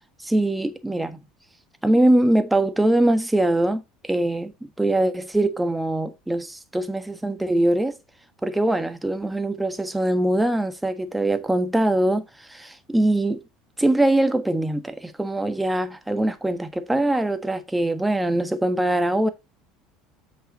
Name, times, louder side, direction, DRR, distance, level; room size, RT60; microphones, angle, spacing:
voice 1, 0.2-1.2 1.8-8.0 8.4-13.4 13.8-19.3, right 1 dB, 10° right, 1.4 m, -22 dB
7.8 x 6.2 x 3.9 m
hypercardioid pair, 80°, 0 cm